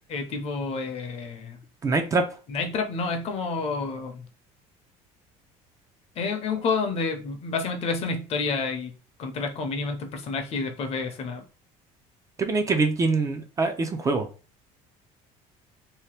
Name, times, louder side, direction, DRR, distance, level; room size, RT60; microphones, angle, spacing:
voice 1, 0.1-1.6 2.5-4.2 6.2-8.9 9.2-11.4, left 4 dB, 45° left, 0.7 m, -29 dB
voice 2, 1.8-2.2 12.4-14.3, right 3 dB, 20° right, 0.4 m, -24 dB
2.8 x 2.1 x 3.2 m
cardioid pair, 130°, 15 cm